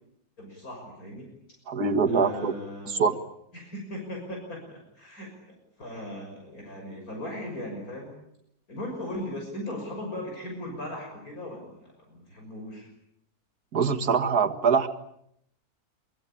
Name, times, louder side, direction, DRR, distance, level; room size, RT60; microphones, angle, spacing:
voice 1, 0.4-1.3 2.1-3.2 3.5-8.1 8.7-12.9, left 1 dB, 65° left, 1 dB, 6.7 m, -38 dB
voice 2, 1.7-2.5 2.9-3.2 13.7-14.9, right 5 dB, 70° right, 5 dB, 2.3 m, -23 dB
25.0 x 24.0 x 8.8 m, 0.74 s
omnidirectional pair, 1.7 m